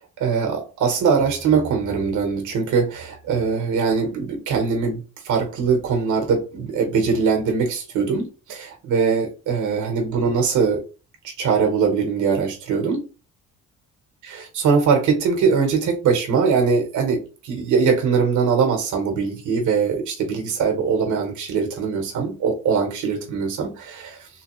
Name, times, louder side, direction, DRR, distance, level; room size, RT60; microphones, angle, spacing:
voice 1, 0.2-10.8 11.2-13.1 14.2-24.3, right 5 dB, 75° right, 1.3 m, -22 dB
3.6 x 2.9 x 3.1 m
cardioid pair, 90°, 30 cm